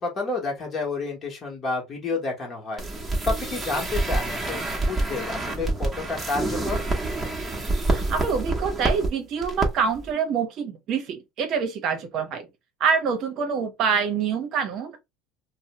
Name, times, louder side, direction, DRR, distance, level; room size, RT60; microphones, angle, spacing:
voice 1, 0.0-2.8 3.2-6.8, left 3 dB, 30° left, 1.0 m, -30 dB
sound 1, 2.8-9.1 9.4-9.7 10.0-10.1, right 2 dB, 10° right, 0.8 m, -27 dB
voice 2, 7.9-12.5 12.8-15.0, right 6 dB, 50° right, 0.7 m, -26 dB
2.7 x 2.0 x 2.9 m
cardioid pair, 140°, 0 cm